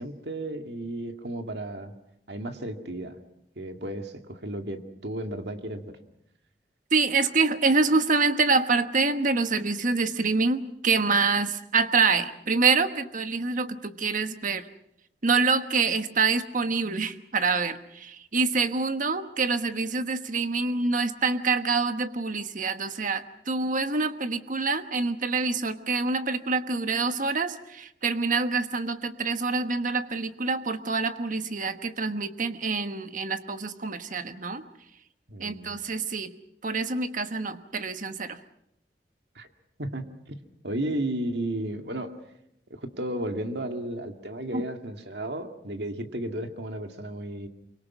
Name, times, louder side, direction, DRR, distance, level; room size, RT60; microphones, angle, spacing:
voice 1, 0.0-1.9 2.3-3.2 3.6-6.0 35.3-35.8 39.4-39.5 39.8-42.1 42.7-47.5, right 1 dB, 70° right, 5 dB, 2.2 m, -34 dB
voice 2, 6.9-14.6 15.2-34.6 35.4-36.3 36.6-38.4 44.5-44.7, right 4 dB, 50° right, 9 dB, 1.3 m, -26 dB
25.5 x 24.0 x 6.1 m, 0.77 s
head